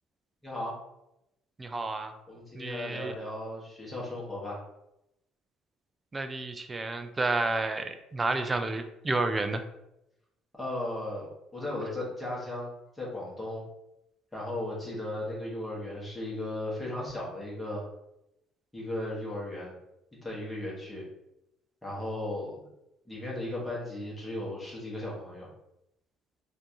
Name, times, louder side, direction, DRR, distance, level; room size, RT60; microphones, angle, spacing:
voice 1, 0.4-0.7 2.3-4.6 10.6-12.7 12.9-13.6 14.3-17.9 18.7-19.7 20.2-21.0 21.8-22.7 23.0-25.5, left 1 dB, 10° left, -5 dB, 1.4 m, -36 dB
voice 2, 1.6-2.1 2.5-3.1 6.1-9.6, right 3 dB, 20° right, 8 dB, 0.4 m, -30 dB
4.4 x 2.6 x 2.9 m, 0.85 s
cardioid pair, 120°, 0 cm